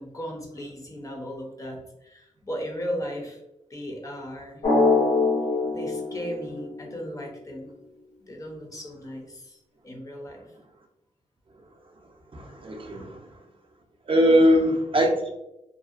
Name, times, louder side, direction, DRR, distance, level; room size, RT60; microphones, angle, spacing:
voice 1, 0.0-3.4 3.7-4.6 5.7-7.7 8.2-9.6 9.8-10.4 12.9-13.0 14.2-14.6, equal, 25° left, 1 dB, 0.5 m, -36 dB
Drum, 4.6-7.2, left 3 dB, 80° left, 0.9 m, -24 dB
voice 2, 12.3-13.2 14.1-15.3, equal, 40° right, 1 dB, 0.4 m, -21 dB
2.6 x 2.0 x 2.4 m, 0.89 s
wide cardioid pair, 90°, 13 cm